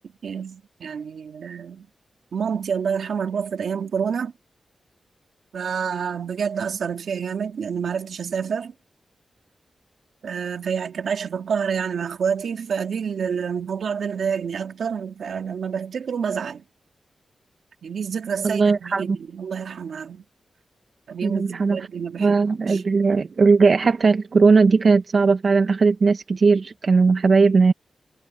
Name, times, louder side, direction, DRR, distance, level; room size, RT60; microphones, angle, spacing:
voice 1, 0.2-1.9 2.3-4.3 5.5-8.7 10.2-16.6 17.8-20.2 21.1-22.8, right 6 dB, 80° right, 2.4 m, -28 dB
voice 2, 18.4-19.2 21.2-21.8 22.2-27.7, right 4 dB, 50° right, 1.2 m, -18 dB
wide cardioid pair, 135°, 0 cm